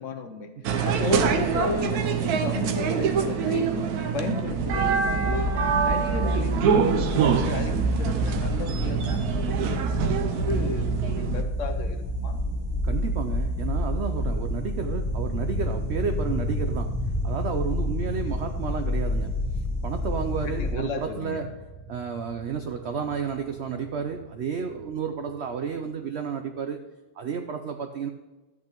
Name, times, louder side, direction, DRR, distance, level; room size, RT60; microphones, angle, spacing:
voice 1, 0.0-0.5 0.8-3.7 4.1-5.5 5.8-12.4 20.4-21.4, left 4 dB, 60° left, 6 dB, 0.9 m, -34 dB
sound 1, 0.6-11.4, right 6 dB, 70° right, 1.1 m, -25 dB
sound 2, 4.5-20.7, left 1 dB, 15° right, 1.0 m, -29 dB
voice 2, 12.8-19.4 19.8-26.9 27.2-28.1, right 6 dB, 85° right, 7 dB, 0.6 m, -31 dB
sound 3, 14.2-25.6, equal, ahead, 1.5 m, -36 dB
13.5 x 8.3 x 3.0 m, 1.1 s
omnidirectional pair, 1.8 m